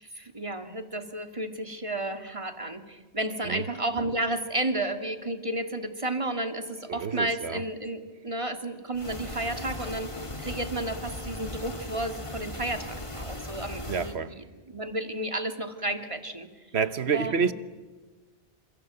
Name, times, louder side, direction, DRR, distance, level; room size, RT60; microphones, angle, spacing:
voice 1, 0.0-16.5 17.1-17.5, right 1 dB, 30° right, 2.1 m, -32 dB
voice 2, 6.9-7.6 13.9-14.4 16.7-17.5, right 6 dB, 90° right, 1.4 m, -28 dB
sound 1, 8.9-14.2, left 1 dB, 30° left, 2.6 m, -38 dB
28.5 x 26.5 x 7.9 m
omnidirectional pair, 1.1 m